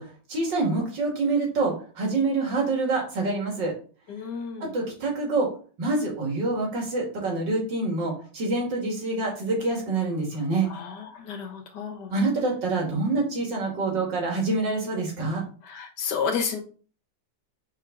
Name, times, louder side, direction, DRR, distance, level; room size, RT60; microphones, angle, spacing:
voice 1, 0.0-3.7 4.6-5.5 5.8-10.7 12.1-15.4, right 3 dB, 80° right, 0 dB, 2.8 m, -26 dB
voice 2, 4.1-4.7 10.7-12.1 15.6-16.6, left 6 dB, 70° left, 4 dB, 1.7 m, -31 dB
5.8 x 4.5 x 3.8 m, 0.39 s
omnidirectional pair, 1.9 m